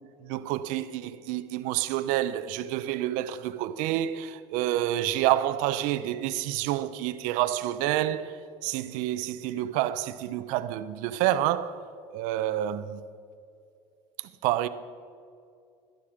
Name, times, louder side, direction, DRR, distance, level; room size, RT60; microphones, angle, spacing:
voice 1, 0.2-11.8 12.1-13.0 14.4-14.7, right 13 dB, 80° right, 0.8 m, -28 dB
17.5 x 12.0 x 5.0 m
cardioid pair, 125°, 13 cm